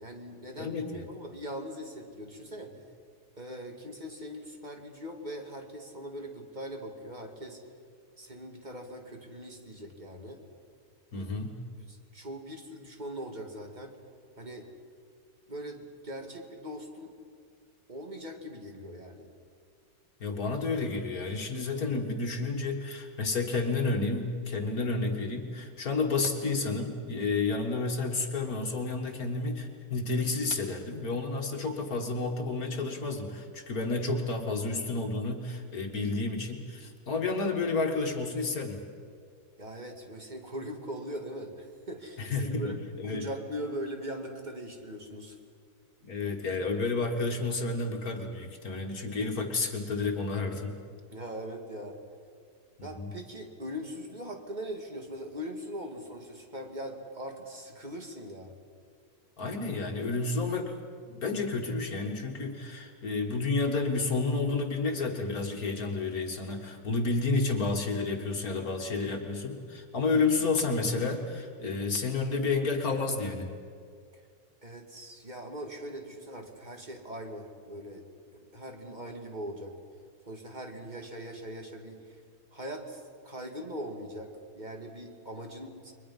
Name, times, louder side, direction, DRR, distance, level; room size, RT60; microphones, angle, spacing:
voice 1, 0.0-2.7 3.4-7.6 8.2-10.4 11.2-11.3 11.8-14.0 14.4-14.7 15.5-17.1 17.9-19.3 39.6-42.8 43.0-45.4 51.1-52.0 52.8-58.6 74.1-74.2 74.6-78.1 78.3-79.8 80.3-82.2 82.5-85.9, equal, 25° right, 3 dB, 2.4 m, -41 dB
voice 2, 0.6-1.1 11.1-11.6 20.2-38.8 42.2-43.3 46.0-50.8 52.8-53.1 59.4-60.8 61.1-73.5, left 3 dB, 55° left, 3 dB, 2.2 m, -30 dB
30.0 x 23.0 x 5.6 m, 2.2 s
omnidirectional pair, 1.9 m